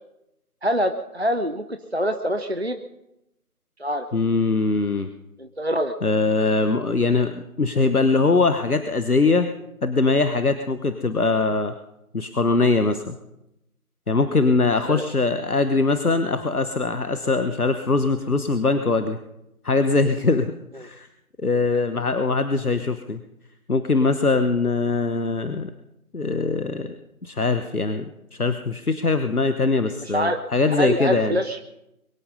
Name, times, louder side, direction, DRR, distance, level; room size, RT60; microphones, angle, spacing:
voice 1, 0.6-2.8 3.8-4.1 5.4-5.9 14.9-15.0 30.0-30.4 30.8-31.6, equal, 45° right, 7 dB, 0.8 m, -25 dB
voice 2, 4.1-5.1 6.0-9.5 9.8-11.7 12.1-13.2 14.1-19.2 19.6-21.1 21.4-23.2 23.7-25.7 26.1-26.9 27.2-31.4, left 3 dB, 75° left, 9 dB, 1.2 m, -22 dB
23.0 x 11.0 x 5.5 m, 0.87 s
figure-of-eight pair, 175°, 45 cm